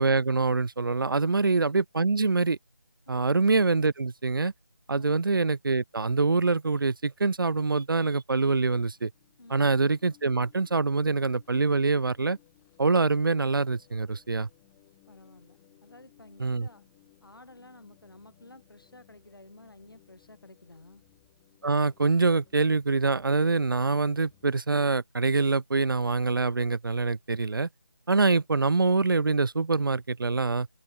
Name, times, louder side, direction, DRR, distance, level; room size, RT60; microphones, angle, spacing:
voice 1, 0.0-2.6 3.1-4.5 4.9-9.1 9.5-12.4 12.8-14.5 16.4-16.7 21.6-27.7 28.1-30.7, right 3 dB, 75° right, 0.6 m, -25 dB
sound 1, 8.6-24.6, left 36 dB, 10° left, 4.2 m, -62 dB
voice 2, 15.1-16.9 17.2-21.0, left 2 dB, 80° left, 6.9 m, -52 dB
open air
figure-of-eight pair, 165°, 12 cm